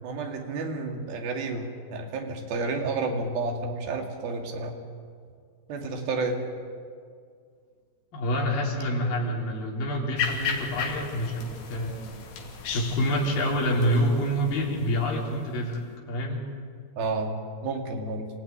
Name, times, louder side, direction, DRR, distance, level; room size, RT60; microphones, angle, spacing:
voice 1, 0.0-4.8 5.7-6.4 17.0-18.3, right 3 dB, 65° right, 2 dB, 4.1 m, -31 dB
voice 2, 8.1-12.0 12.7-15.8 16.1-16.4, equal, 60° left, -1 dB, 5.2 m, -27 dB
sound 1, 10.2-15.8, left 6 dB, 75° left, 4.3 m, -35 dB
27.0 x 16.5 x 9.7 m, 2.1 s
omnidirectional pair, 4.6 m